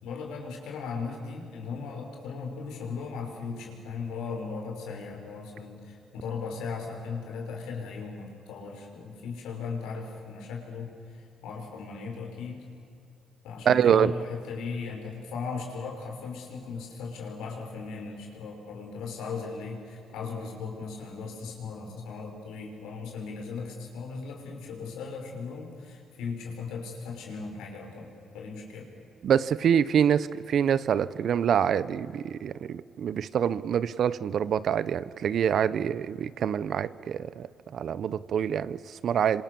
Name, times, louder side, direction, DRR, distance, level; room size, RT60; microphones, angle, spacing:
voice 1, 0.0-12.6 13.4-28.9, left 5 dB, 90° left, 1 dB, 5.8 m, -37 dB
voice 2, 13.6-14.1 29.2-39.4, right 8 dB, 65° right, 17 dB, 0.8 m, -26 dB
27.0 x 26.0 x 7.1 m, 2.6 s
cardioid pair, 90°, 0 cm